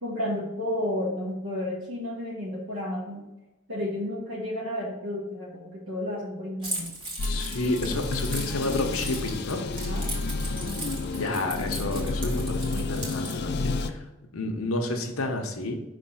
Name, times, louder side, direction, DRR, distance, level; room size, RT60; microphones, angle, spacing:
voice 1, 0.0-3.2 3.7-7.0 9.9-10.1, left 1 dB, 70° right, -7 dB, 1.4 m, -32 dB
Keys jangling, 6.6-13.4, right 1 dB, 20° right, 1.8 m, -38 dB
voice 2, 7.2-9.6 11.1-14.0 14.3-15.8, left 2 dB, 80° left, 3 dB, 0.9 m, -30 dB
sound 1, 7.2-13.9, left 3 dB, 50° left, 0.4 m, -30 dB
5.3 x 3.3 x 5.5 m, 1.0 s
head